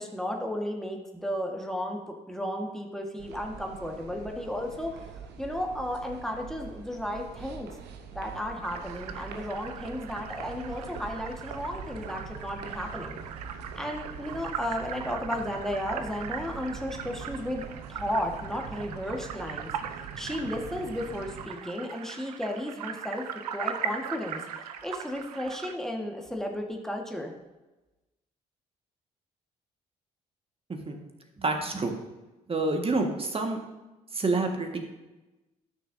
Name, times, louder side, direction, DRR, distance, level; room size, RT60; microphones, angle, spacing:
voice 1, 0.0-5.0 5.4-7.7 8.1-13.2 13.7-19.7 20.2-24.4 24.8-27.3, left 1 dB, ahead, 1 dB, 1.6 m, -34 dB
sound 1, 3.2-21.5, right 6 dB, 60° right, 0.9 m, -43 dB
sound 2, 8.6-25.7, right 8 dB, 90° right, 0.4 m, -40 dB
voice 2, 31.4-31.9 32.5-33.6 34.1-34.8, right 3 dB, 30° right, 4 dB, 1.7 m, -28 dB
13.0 x 6.3 x 2.7 m, 1.1 s
hypercardioid pair, 50°, 19 cm